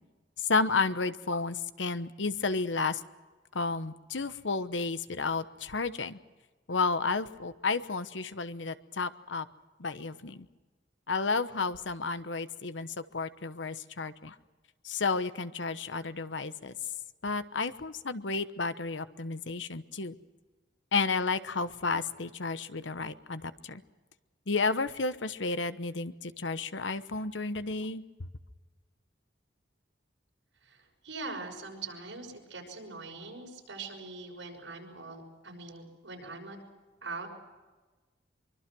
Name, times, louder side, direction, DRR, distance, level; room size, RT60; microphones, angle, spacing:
voice 1, 0.4-3.0 3.5-6.2 6.7-9.5 9.8-10.5 11.1-14.3 14.8-16.7 17.2-20.2 20.9-23.8 24.5-28.0, left 4 dB, 75° left, 12 dB, 1.1 m, -32 dB
voice 2, 30.6-36.6 37.0-37.3, right 3 dB, 80° right, 1 dB, 6.2 m, -42 dB
24.0 x 24.0 x 6.2 m, 1.3 s
head